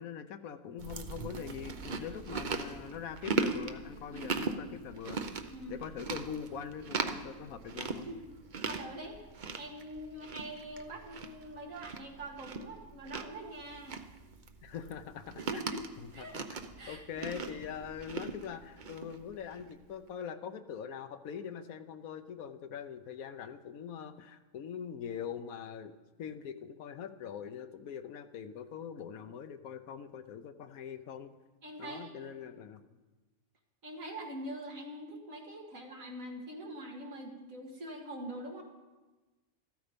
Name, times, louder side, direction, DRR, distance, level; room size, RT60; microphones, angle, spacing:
voice 1, 0.0-5.2 5.7-8.1 14.6-16.5 16.9-25.9 26.2-31.3 31.8-32.8, left 7 dB, 75° left, 10 dB, 1.1 m, -43 dB
Chewing mastication, 0.8-19.7, right 4 dB, 40° right, 0.8 m, -39 dB
voice 2, 8.6-9.2 9.5-14.0 15.3-15.9 16.1-16.3 16.8-17.3 31.6-32.3 33.8-38.6, right 1 dB, 65° right, 1 dB, 2.3 m, -44 dB
14.0 x 13.0 x 5.2 m, 1.2 s
omnidirectional pair, 1.5 m